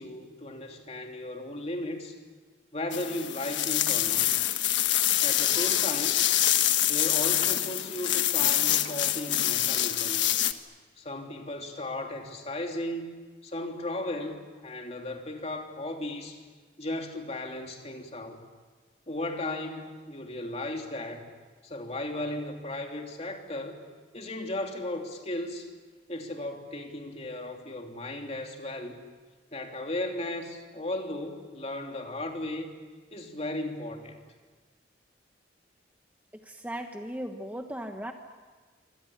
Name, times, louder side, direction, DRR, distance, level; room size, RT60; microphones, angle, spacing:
voice 1, 0.0-2.2 2.7-4.3 5.2-6.2 6.8-10.4 11.0-13.2 13.4-16.4 16.8-18.4 19.1-21.2 21.6-23.8 24.1-25.7 26.1-29.0 29.5-32.7 33.1-34.2, left 1 dB, 35° left, 3 dB, 3.1 m, -36 dB
sound 1, 2.9-10.5, left 12 dB, 80° left, 1.4 m, -25 dB
voice 2, 36.3-38.1, right 1 dB, 10° right, 4 dB, 1.3 m, -37 dB
27.0 x 25.0 x 8.7 m, 1.4 s
head